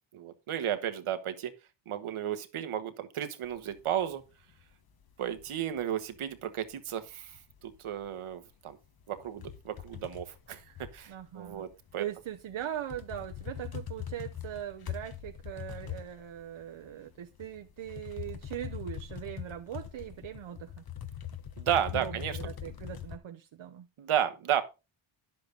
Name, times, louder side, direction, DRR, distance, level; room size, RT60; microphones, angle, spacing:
voice 1, 0.1-1.5 1.9-4.2 5.2-7.4 7.6-8.8 9.1-12.1 21.6-22.4 22.6-22.7 24.0-24.6, right 10 dB, 90° right, 1.4 m, -33 dB
sound 1, 3.4-5.8 6.1-6.7 7.1-11.9 12.2-23.2, left 9 dB, 50° left, 1.2 m, -42 dB
voice 2, 11.1-11.6 12.0-20.8 21.9-23.9, right 11 dB, 70° right, 0.9 m, -40 dB
10.5 x 7.8 x 3.9 m
cardioid pair, 85°, 48 cm